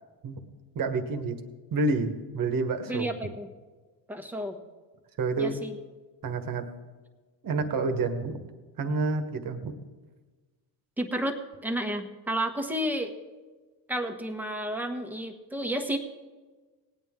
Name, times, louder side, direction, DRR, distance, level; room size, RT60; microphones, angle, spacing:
voice 1, 0.7-1.4 1.7-3.1 5.2-5.6 6.2-6.6 7.4-8.4 8.8-9.7, right 3 dB, 45° right, 8 dB, 1.4 m, -28 dB
voice 2, 2.9-3.5 4.1-4.6 5.4-5.7 11.0-13.1 13.9-16.0, right 1 dB, 5° right, 4 dB, 1.2 m, -31 dB
18.0 x 9.2 x 3.7 m, 1.3 s
cardioid pair, 95°, 45 cm